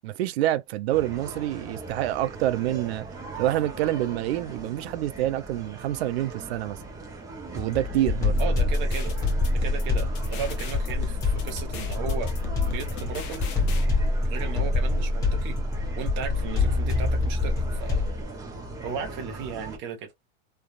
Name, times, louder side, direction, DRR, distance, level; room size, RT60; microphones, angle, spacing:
voice 1, 0.0-3.1 3.4-6.8 7.5-8.4, right 14 dB, 65° right, 0.6 m, -27 dB
sound 1, 0.9-19.8, right 3 dB, 10° right, 0.8 m, -40 dB
sound 2, 7.6-18.2, left 2 dB, 10° left, 1.2 m, -26 dB
sound 3, 8.2-13.8, left 7 dB, 35° left, 0.8 m, -39 dB
voice 2, 8.4-9.2 9.5-12.3 12.6-13.5 14.2-15.6 16.0-18.1 18.8-20.1, right 6 dB, 35° right, 1.0 m, -35 dB
3.3 x 2.4 x 2.4 m
supercardioid pair, 150°, 33 cm